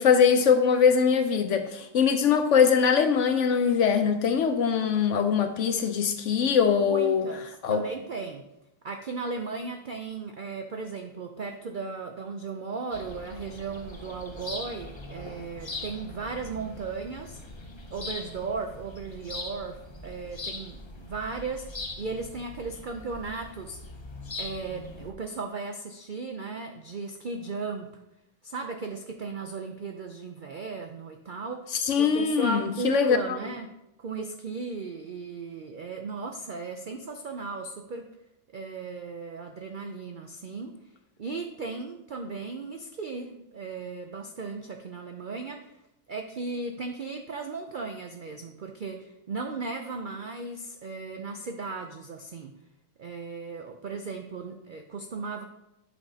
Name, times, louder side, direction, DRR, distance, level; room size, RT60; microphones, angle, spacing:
voice 1, 0.0-7.3 7.6-7.8 31.7-33.2, left 6 dB, 65° left, 8 dB, 0.8 m, -22 dB
voice 2, 6.9-8.4 8.8-17.4 17.9-21.7 22.0-23.8 24.4-27.9 28.4-31.7 32.0-33.7 34.0-38.1 38.5-40.7 41.2-45.7 46.1-52.5 53.0-55.4, right 4 dB, 65° right, 4 dB, 0.5 m, -36 dB
sound 1, 12.9-25.1, left 2 dB, 30° left, 0.5 m, -41 dB
11.0 x 6.0 x 2.8 m, 0.88 s
omnidirectional pair, 1.6 m